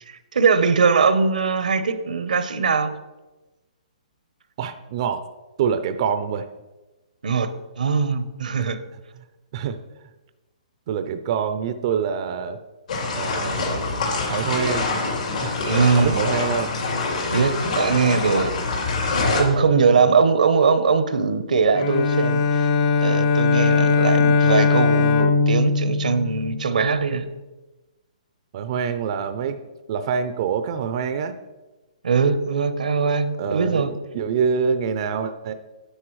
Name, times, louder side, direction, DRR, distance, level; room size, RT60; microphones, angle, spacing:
voice 1, 0.3-2.9 7.2-8.8 15.6-16.2 17.3-18.6 19.2-22.7 23.0-27.2 32.0-33.9, right 5 dB, 80° right, 11 dB, 0.8 m, -21 dB
voice 2, 4.6-5.2 5.6-6.5 8.6-8.7 9.5-9.8 10.9-12.6 13.1-13.9 14.3-15.0 15.4-15.6 16.0-16.8 20.0-20.1 28.5-29.6 29.9-31.3 33.4-35.5, right 7 dB, 45° right, 10 dB, 0.5 m, -25 dB
sound 1, 12.9-19.4, left 3 dB, 75° left, 3.0 m, -25 dB
Bowed string instrument, 21.7-27.0, left 4 dB, 40° left, 0.6 m, -20 dB
9.8 x 8.1 x 3.1 m, 1.1 s
hypercardioid pair, 155°, 4 cm